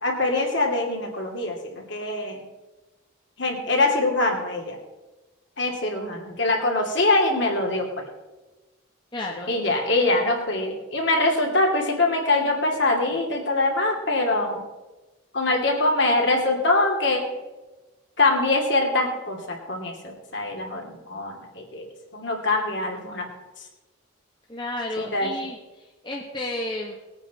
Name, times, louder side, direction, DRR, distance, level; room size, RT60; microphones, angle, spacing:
voice 1, 0.0-2.4 3.4-4.8 5.6-7.9 9.5-14.6 15.3-17.2 18.2-23.3 25.0-25.3, left 2 dB, 60° left, 0 dB, 2.8 m, -23 dB
voice 2, 9.1-9.5 24.5-27.0, left 1 dB, 25° left, -2 dB, 1.3 m, -32 dB
20.5 x 9.0 x 4.2 m, 1.1 s
head